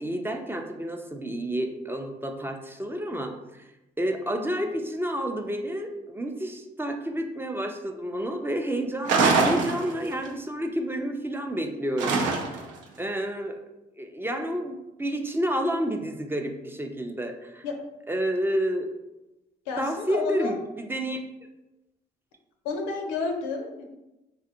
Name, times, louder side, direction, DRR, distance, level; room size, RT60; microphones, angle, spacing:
voice 1, 0.0-3.7 4.0-12.2 13.0-13.6 14.0-17.6 18.1-18.9 19.8-21.2, equal, 10° right, 4 dB, 0.4 m, -30 dB
sound 1, 9.1-10.3 12.0-12.8, right 4 dB, 75° right, 0.5 m, -23 dB
voice 2, 19.7-20.5 22.6-23.8, left 4 dB, 85° left, 3 dB, 0.5 m, -30 dB
2.6 x 2.4 x 2.7 m, 0.95 s
hypercardioid pair, 60°, 19 cm